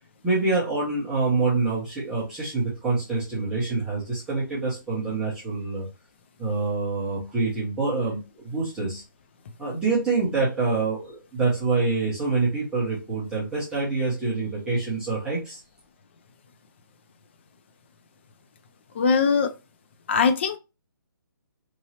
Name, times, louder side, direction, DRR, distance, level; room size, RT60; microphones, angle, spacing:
voice 1, 0.2-5.9 6.4-9.0 9.6-15.6, right 3 dB, 5° right, 0.9 m, -26 dB
voice 2, 18.9-19.5 20.1-20.6, left 5 dB, 30° left, 0.3 m, -21 dB
3.0 x 2.7 x 2.8 m
hypercardioid pair, 155°, 12 cm